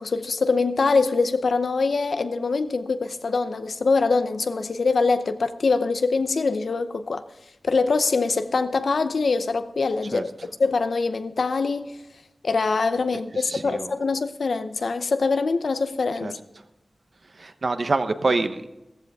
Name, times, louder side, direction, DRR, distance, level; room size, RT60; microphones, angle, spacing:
voice 1, 0.0-7.2 7.6-10.3 10.6-11.9 12.4-16.4, left 4 dB, 75° left, 0.7 m, -23 dB
voice 2, 13.3-13.9 16.2-16.3 17.4-18.7, right 3 dB, 50° right, 0.9 m, -26 dB
15.0 x 14.5 x 3.6 m
wide cardioid pair, 105°, 0 cm